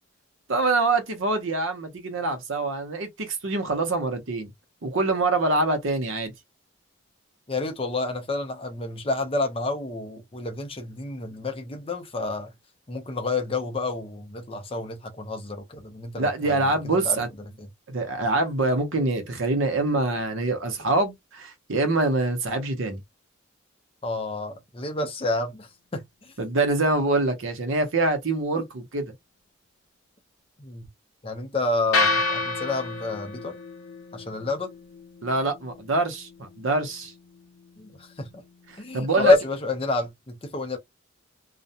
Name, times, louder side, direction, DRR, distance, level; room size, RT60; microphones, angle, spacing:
voice 1, 0.5-4.5 4.8-6.3 16.2-17.3 17.9-23.0 26.4-29.1 35.2-37.1 38.9-39.3, right 2 dB, 70° right, 0.7 m, -25 dB
voice 2, 7.5-12.5 12.9-17.2 17.6-17.7 24.0-26.3 28.5-28.6 30.6-30.9 31.2-33.6 34.1-34.7 37.8-38.3 38.8-40.8, left 2 dB, 25° left, 0.5 m, -29 dB
sound 1, 31.9-40.1, left 3 dB, 85° left, 0.6 m, -32 dB
2.4 x 2.1 x 2.7 m
head